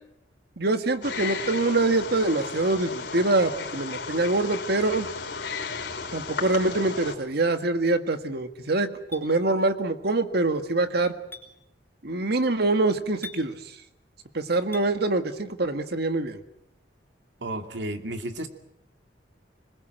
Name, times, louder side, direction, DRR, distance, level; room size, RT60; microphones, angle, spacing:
voice 1, 0.6-5.1 6.1-11.1 12.0-13.5 14.3-16.4, right 2 dB, 65° right, 8 dB, 1.7 m, -25 dB
Wild animals, 1.0-7.2, left 4 dB, 80° left, 4.4 m, -34 dB
Chink clink, 9.1-9.3 11.3-11.5 13.2-13.4 14.7-14.9, left 3 dB, 15° left, 4.1 m, -40 dB
voice 2, 17.4-18.5, right 1 dB, 85° right, 6 dB, 2.6 m, -32 dB
25.5 x 21.0 x 7.8 m, 0.81 s
head